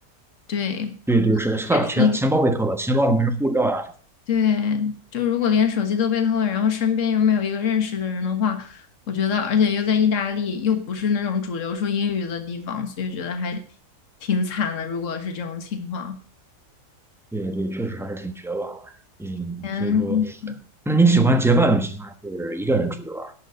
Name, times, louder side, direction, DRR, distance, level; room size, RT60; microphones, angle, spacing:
voice 1, 0.5-1.0 1.7-2.2 4.3-13.6 14.2-16.2 19.6-20.6, left 7 dB, 50° left, 1.8 m, -23 dB
voice 2, 1.1-3.9 17.3-18.8 19.2-20.2 20.9-23.3, right 2 dB, ahead, 0.9 m, -22 dB
11.5 x 5.7 x 7.9 m
omnidirectional pair, 1.7 m